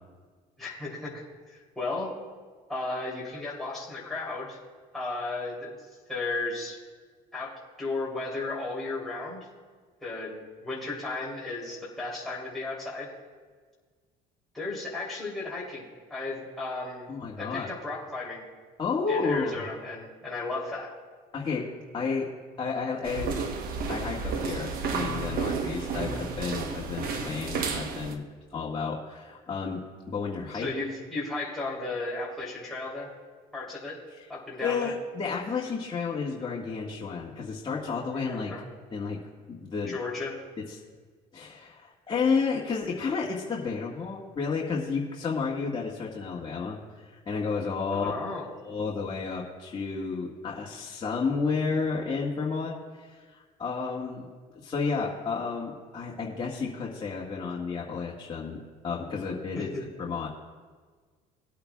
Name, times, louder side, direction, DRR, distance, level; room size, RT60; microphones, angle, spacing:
voice 1, 0.6-1.2 1.7-2.1 2.7-4.6 4.9-5.7 6.1-6.8 7.3-9.4 10.0-13.1 14.5-15.8 16.1-17.1 17.4-18.4 19.1-20.9 30.5-33.1 33.5-34.0 34.3-34.9 38.1-38.6 39.9-40.3 47.9-48.4 59.5-59.9, left 3 dB, ahead, -7 dB, 3.3 m, -34 dB
voice 2, 17.1-17.7 18.8-19.6 21.3-21.7 21.9-22.3 22.6-23.4 23.9-28.2 28.5-30.7 34.2-34.3 34.6-38.5 38.9-39.2 39.5-39.9 40.7-40.8 41.3-48.1 48.6-54.2 54.5-59.7 60.0-60.3, left 5 dB, 30° left, -5 dB, 1.7 m, -31 dB
sound 1, 23.0-28.1, right 5 dB, 60° right, 1.2 m, -32 dB
20.5 x 8.6 x 2.4 m, 1.5 s
cardioid pair, 100°, 17 cm